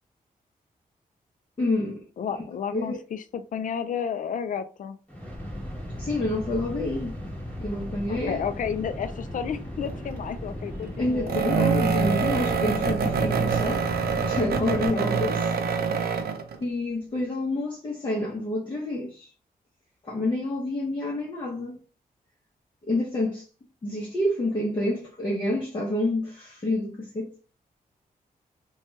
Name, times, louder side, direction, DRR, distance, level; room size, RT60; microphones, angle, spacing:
voice 1, 1.6-2.1 2.7-3.0 6.0-7.1 7.6-8.4 11.0-13.9 14.1-15.5 16.6-19.3 20.0-21.8 22.8-23.4 23.8-27.3, left 1 dB, 30° left, 0.7 m, -28 dB
voice 2, 2.2-5.0 8.1-11.3 14.9-15.1, left 7 dB, 60° left, 0.4 m, -32 dB
sound 1, 5.1-14.9, left 1 dB, 10° left, 1.0 m, -36 dB
sound 2, 9.8-10.2 11.3-16.6, right 5 dB, 85° right, 0.4 m, -25 dB
2.9 x 2.2 x 3.0 m
cardioid pair, 95°, 16 cm